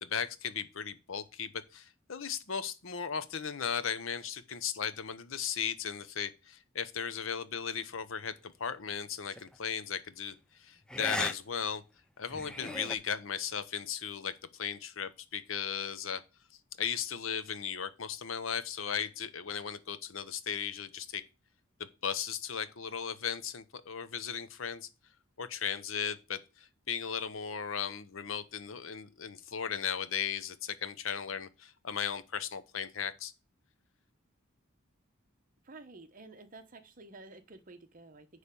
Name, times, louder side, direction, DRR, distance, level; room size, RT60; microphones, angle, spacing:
voice 1, 0.0-11.8 12.2-16.2 16.8-21.2 21.8-24.9 25.4-33.3, left 7 dB, 75° left, 0.8 m, -36 dB
sound 1, 9.3-9.6 10.9-11.3 11.7-11.8 12.3-13.0, equal, 5° left, 0.5 m, -37 dB
voice 2, 35.6-38.3, right 2 dB, 40° right, 1.0 m, -51 dB
9.8 x 3.3 x 6.9 m
head